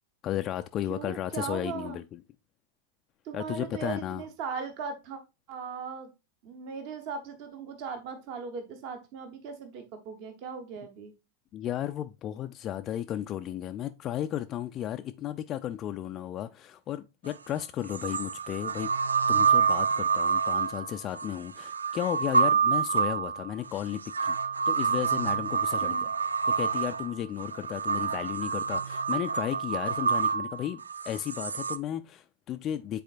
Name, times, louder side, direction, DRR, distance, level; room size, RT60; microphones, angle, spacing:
voice 1, 0.2-2.2 3.3-4.2 11.5-18.9 19.3-24.4 24.7-26.0 26.5-33.0, left 11 dB, 30° left, 0.3 m, -34 dB
voice 2, 0.9-2.0 3.2-5.2 5.5-6.1 6.4-11.1 25.8-26.0, right 5 dB, 45° right, 1.1 m, -38 dB
sound 1, 17.3-17.4 17.9-31.8, right 6 dB, 75° right, 0.3 m, -27 dB
9.2 x 4.1 x 2.5 m
figure-of-eight pair, 90°, 0 cm